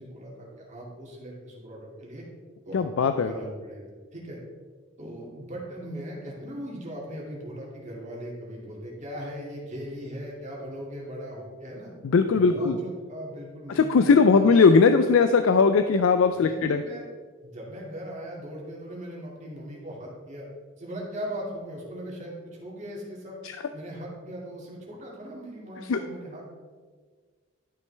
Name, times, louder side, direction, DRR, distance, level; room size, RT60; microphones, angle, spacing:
voice 1, 0.0-2.2 2.6-3.8 4.1-4.4 5.0-11.9 12.2-14.6 16.4-17.0 17.4-20.4 20.8-23.4 23.7-26.4, equal, 35° right, -3 dB, 2.3 m, -39 dB
voice 2, 2.7-3.3 12.0-12.8 13.7-16.8 25.9-26.0, left 5 dB, 75° left, 8 dB, 0.4 m, -19 dB
12.0 x 6.2 x 3.3 m, 1.5 s
head